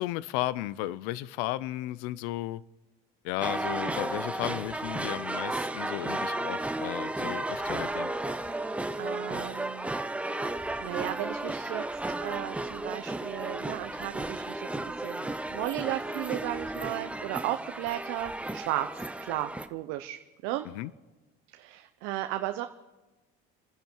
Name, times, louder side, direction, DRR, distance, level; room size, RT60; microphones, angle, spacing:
voice 1, 0.0-2.6 3.2-8.1 20.7-20.9, left 15 dB, 90° left, 0.5 m, -34 dB
sound 1, 3.4-19.7, right 2 dB, 5° right, 0.8 m, -34 dB
voice 2, 8.5-9.9 10.8-11.9 12.2-20.7 21.5-22.7, right 14 dB, 75° right, 0.8 m, -35 dB
28.0 x 10.5 x 4.6 m
cardioid pair, 115°, 21 cm